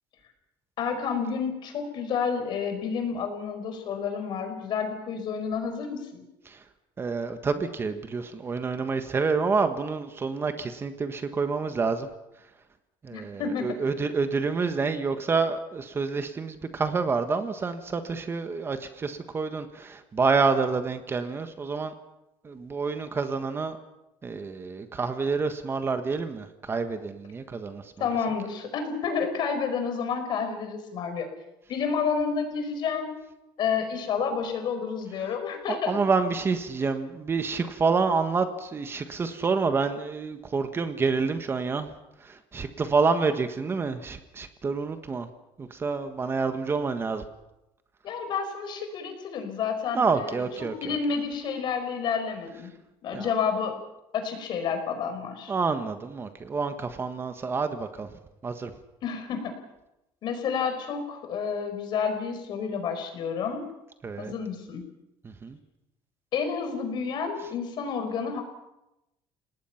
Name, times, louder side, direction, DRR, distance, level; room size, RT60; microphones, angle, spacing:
voice 1, 0.8-6.2 13.1-13.8 28.0-31.3 31.7-33.1 33.6-36.0 48.0-50.5 50.8-52.7 53.0-53.8 54.1-55.5 59.0-59.5 60.2-63.6 64.2-64.8 66.3-68.4, left 6 dB, 55° left, 6 dB, 4.9 m, -30 dB
voice 2, 7.0-12.1 13.0-21.9 22.4-23.8 24.2-27.8 35.7-41.9 42.2-45.3 45.6-47.2 49.9-51.0 53.1-53.3 55.5-58.1 58.4-58.7 64.0-64.3 65.2-65.6, right 4 dB, 25° right, 8 dB, 1.4 m, -28 dB
29.5 x 19.0 x 5.9 m, 0.92 s
cardioid pair, 135°, 9 cm